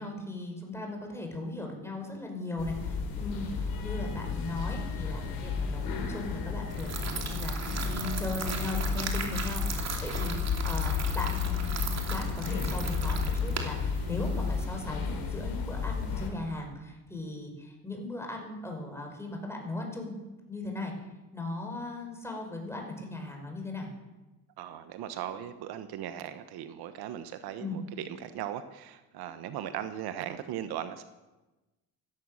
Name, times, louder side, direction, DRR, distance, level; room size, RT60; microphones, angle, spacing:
voice 1, 0.0-11.4 12.1-20.2 20.5-20.9 21.3-23.9 27.6-27.8, left 2 dB, 5° left, 1 dB, 5.1 m, -38 dB
sound 1, 2.6-16.3, left 5 dB, 60° left, 4.3 m, -32 dB
sound 2, 6.7-14.7, right 5 dB, 40° right, 2.8 m, -38 dB
voice 2, 24.6-31.0, right 10 dB, 70° right, 10 dB, 1.2 m, -38 dB
15.5 x 14.5 x 6.5 m, 1.1 s
cardioid pair, 115°, 39 cm